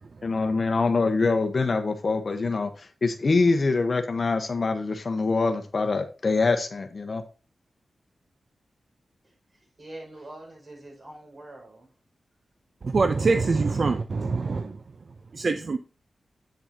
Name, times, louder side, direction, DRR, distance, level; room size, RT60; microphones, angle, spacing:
voice 1, 0.2-7.2, left 3 dB, 55° left, 1.1 m, -24 dB
voice 2, 9.2-11.9, right 1 dB, 45° right, 5.5 m, -45 dB
voice 3, 12.8-14.8 15.3-15.8, right 4 dB, 60° right, 0.6 m, -24 dB
8.9 x 7.9 x 2.8 m
cardioid pair, 60°, 0 cm